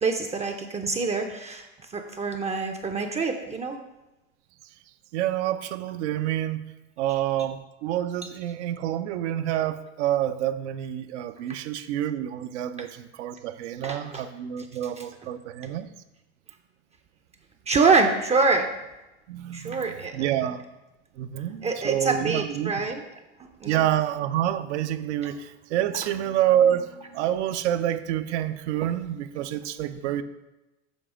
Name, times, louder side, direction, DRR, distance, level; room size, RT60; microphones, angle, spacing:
voice 1, 0.0-1.7 1.9-3.8 12.8-12.9 13.8-14.3 15.0-15.1 17.7-18.7 19.5-20.3 21.6-23.0 23.6-23.8 25.2-25.3, right 4 dB, 20° right, 5 dB, 0.5 m, -25 dB
voice 2, 5.1-6.6 7.0-15.9 19.3-19.8 20.1-20.6 21.2-22.7 23.6-30.2, right 11 dB, 70° right, 11 dB, 0.6 m, -27 dB
7.2 x 3.4 x 4.9 m, 1.0 s
hypercardioid pair, 90°, 35 cm